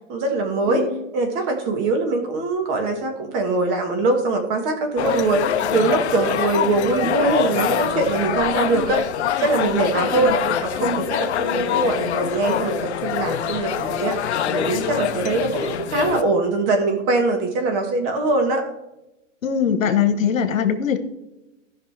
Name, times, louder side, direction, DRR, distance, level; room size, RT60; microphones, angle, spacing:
voice 1, 0.1-0.8 1.1-9.0 9.4-10.3 10.6-18.6, right 3 dB, 25° right, 4 dB, 1.5 m, -22 dB
sound 1, 5.0-16.2, left 9 dB, 60° left, 0.8 m, -24 dB
voice 2, 19.4-21.0, left 7 dB, 85° left, 9 dB, 1.3 m, -21 dB
16.0 x 5.8 x 3.3 m, 0.96 s
hypercardioid pair, 155°, 39 cm